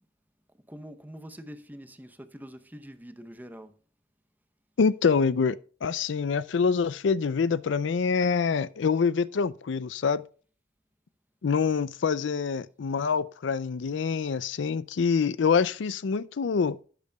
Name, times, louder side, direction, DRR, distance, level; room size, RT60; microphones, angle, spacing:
voice 1, 0.7-3.7, equal, 10° right, 0.7 m, -44 dB
voice 2, 4.8-10.2 11.4-16.8, left 5 dB, 75° left, 0.4 m, -26 dB
12.0 x 8.2 x 2.3 m
head